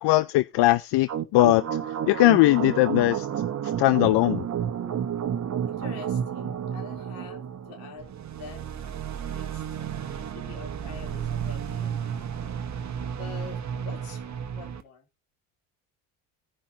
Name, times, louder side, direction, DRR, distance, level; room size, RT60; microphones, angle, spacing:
voice 1, 0.0-1.6 2.1-3.3 3.6-4.5, left 18 dB, 65° left, 0.7 m, -20 dB
sound 1, 1.1-14.8, right 8 dB, 40° right, 1.3 m, -31 dB
voice 2, 5.7-8.1 8.4-12.6 13.1-15.1, left 5 dB, 80° left, 3.8 m, -46 dB
17.0 x 5.6 x 3.0 m
supercardioid pair, 85°, 43 cm